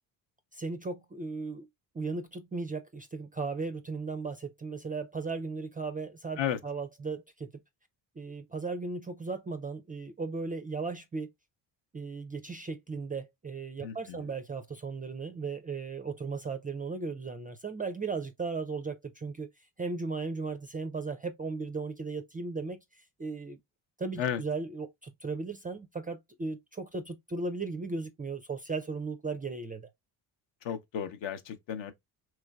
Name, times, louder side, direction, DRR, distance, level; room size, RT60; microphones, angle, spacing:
voice 1, 0.5-1.7 1.9-7.6 8.2-11.3 11.9-23.6 24.0-29.9, right 4 dB, 20° right, 0.3 m, -36 dB
voice 2, 13.8-14.2 24.2-24.4 30.6-31.9, left 9 dB, 65° left, 0.8 m, -33 dB
3.2 x 3.1 x 2.2 m
supercardioid pair, 60°, 50 cm